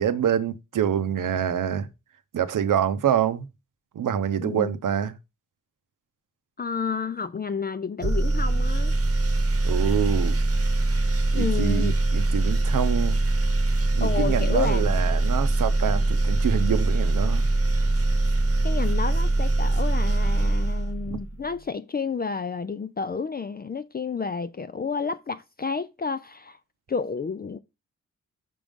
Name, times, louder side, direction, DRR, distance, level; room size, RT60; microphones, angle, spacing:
voice 1, 0.0-1.9 2.3-3.5 3.9-5.1 9.6-10.4 11.3-13.2 13.9-17.5 21.1-21.2, right 9 dB, 80° right, 0.8 m, -26 dB
voice 2, 4.4-4.7 6.6-8.9 11.3-12.0 14.0-15.0 18.6-26.6 26.9-27.6, left 5 dB, 30° left, 0.4 m, -30 dB
sound 1, 8.0-21.4, right 2 dB, 45° right, 1.0 m, -23 dB
6.1 x 3.7 x 5.2 m
wide cardioid pair, 90°, 31 cm